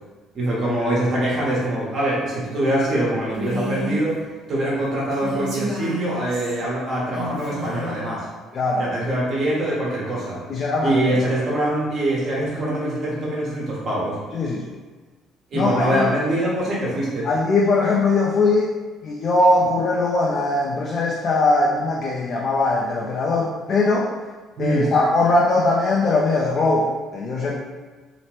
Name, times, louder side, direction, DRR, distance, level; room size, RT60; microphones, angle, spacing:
voice 1, 0.3-4.2 4.5-8.2 8.8-10.4 10.8-14.2 15.5-17.3 24.6-24.9, right 1 dB, 50° right, -6 dB, 1.2 m, -23 dB
Female speech woman speaking, 3.3-4.0 5.1-6.6 7.1-8.0, right 1 dB, 70° right, 1.0 m, -30 dB
voice 2, 8.5-8.9 10.5-11.1 14.3-14.6 15.5-16.1 17.2-18.7 19.0-24.1 24.6-27.6, left 2 dB, 50° left, -2 dB, 0.4 m, -20 dB
2.9 x 2.0 x 3.1 m, 1.4 s
supercardioid pair, 70°, 0 cm